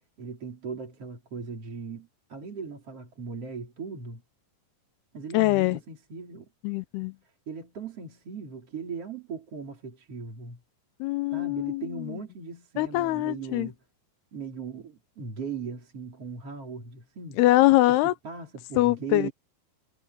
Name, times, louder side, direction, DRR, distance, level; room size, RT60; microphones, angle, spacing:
voice 1, 0.2-4.2 5.1-6.5 7.5-10.6 11.3-13.8 14.3-17.4 17.9-19.3, right 5 dB, 35° right, 4.7 m, -38 dB
voice 2, 5.3-5.8 6.6-7.1 11.0-11.8 12.8-13.7 17.4-18.1 18.8-19.3, left 17 dB, 80° left, 2.6 m, -23 dB
omnidirectional pair, 4.8 m